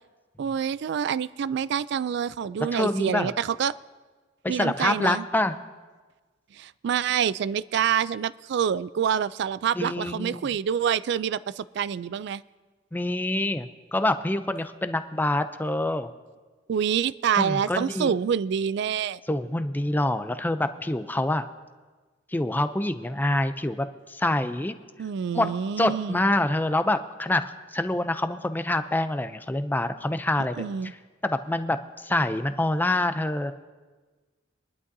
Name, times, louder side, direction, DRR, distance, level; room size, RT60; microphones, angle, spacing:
voice 1, 0.4-3.7 4.5-5.2 6.5-12.4 16.7-19.2 25.0-26.2 30.6-30.9, right 8 dB, 60° right, 18 dB, 0.3 m, -27 dB
voice 2, 2.7-3.3 4.4-5.6 9.7-10.4 12.9-16.1 17.4-18.1 19.3-21.5 22.3-24.7 25.3-30.7 31.2-33.5, left 1 dB, 10° left, 10 dB, 0.4 m, -26 dB
24.0 x 11.0 x 2.7 m, 1.4 s
head